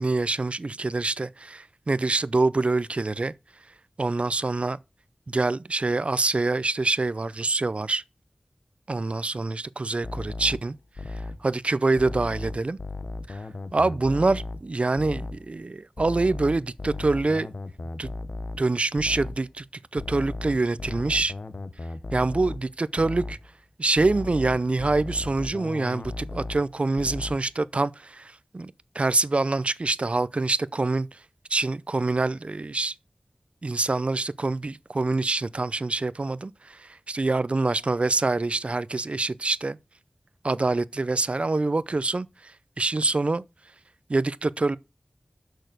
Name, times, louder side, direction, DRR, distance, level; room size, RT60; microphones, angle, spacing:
voice 1, 0.0-3.3 4.0-4.8 5.3-8.0 8.9-10.7 11.1-12.8 13.3-13.4 13.7-17.5 18.0-18.1 18.6-19.6 19.9-21.3 22.1-23.4 23.8-31.2 31.5-32.9 33.6-39.8 40.4-42.5 42.8-43.4 44.1-44.8, right 3 dB, 55° right, 0.5 m, -25 dB
sound 1, 10.0-11.5 12.0-14.7 15.0-15.5 16.0-19.5 20.0-22.7 23.0-23.5 24.0-26.7 27.0-27.5, left 2 dB, 65° left, 0.8 m, -36 dB
6.5 x 6.2 x 6.6 m
wide cardioid pair, 45°, 2 cm